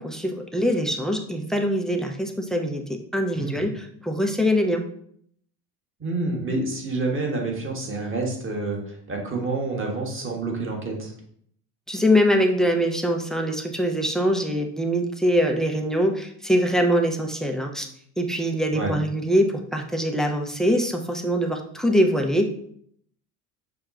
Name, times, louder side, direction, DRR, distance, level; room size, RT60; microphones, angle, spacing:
voice 1, 0.0-4.8 11.9-17.9 18.2-22.5, equal, ahead, 4 dB, 0.3 m, -23 dB
voice 2, 6.0-11.1 18.7-18.9, right 3 dB, 25° right, 0 dB, 1.4 m, -28 dB
5.9 x 2.2 x 3.7 m, 0.66 s
hypercardioid pair, 75°, 48 cm